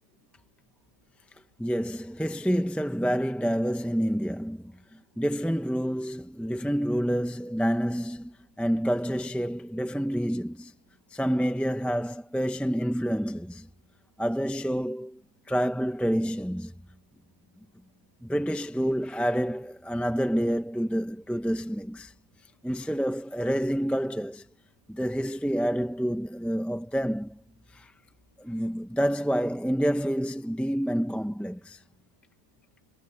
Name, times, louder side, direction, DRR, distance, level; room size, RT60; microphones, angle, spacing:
voice 1, 1.6-10.7 11.1-13.7 14.2-15.2 15.5-16.7 18.2-22.1 22.6-24.4 24.9-27.4 27.7-27.9 28.4-31.8, equal, ahead, 0.8 m, -28 dB
omnidirectional pair, 1.9 m